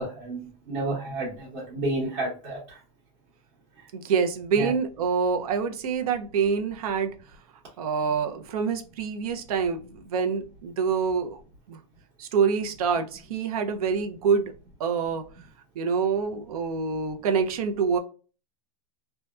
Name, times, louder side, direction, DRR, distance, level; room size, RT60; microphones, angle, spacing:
voice 1, 0.0-2.8 3.8-3.9 4.5-4.7, right 2 dB, 60° right, -5 dB, 1.0 m, -31 dB
voice 2, 3.9-7.1 7.8-11.4 11.7-11.8 12.2-14.5 14.8-15.2 15.8-18.0, right 6 dB, 90° right, 6 dB, 0.6 m, -26 dB
2.7 x 2.2 x 2.3 m, 0.37 s
supercardioid pair, 155°, 19 cm